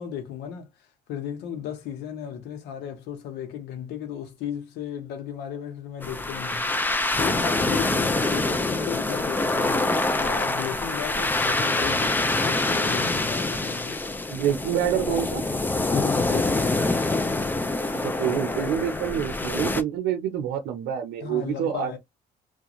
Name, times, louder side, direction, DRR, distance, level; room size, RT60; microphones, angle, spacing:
voice 1, 0.0-14.0 15.9-16.6 21.2-22.0, left 8 dB, 85° left, 0.8 m, -35 dB
sound 1, 6.0-19.8, left 2 dB, 10° left, 0.4 m, -25 dB
voice 2, 14.3-15.4 17.9-22.0, right 10 dB, 80° right, 0.6 m, -27 dB
2.4 x 2.2 x 2.9 m
cardioid pair, 110°, 17 cm